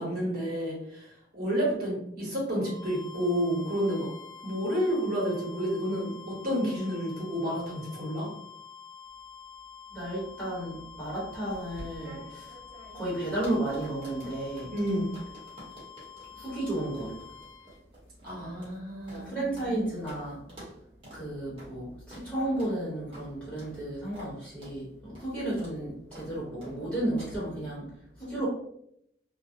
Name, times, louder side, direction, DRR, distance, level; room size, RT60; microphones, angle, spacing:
voice 1, 0.0-4.1 4.4-8.3 14.7-15.1 18.2-19.3, equal, 55° right, -5 dB, 1.0 m, -30 dB
sound 1, 2.5-17.8, left 6 dB, 80° left, 0.4 m, -48 dB
voice 2, 9.9-12.5 12.9-14.7 16.4-17.1 19.1-20.4 21.1-27.9 28.2-28.5, right 1 dB, 5° left, -9 dB, 1.0 m, -33 dB
sound 2, 11.5-19.8 20.1-20.2 20.5-20.8 21.0-21.2 21.6-21.7 22.1-22.3 22.6-22.8 23.1-23.3 23.6-23.8 24.1-24.3 24.6-24.8 25.2-25.3 25.6-25.8 26.1-26.3 26.6-26.8 27.2-27.4, right 1 dB, 30° right, 0.9 m, -48 dB
2.3 x 2.1 x 2.7 m, 0.74 s
head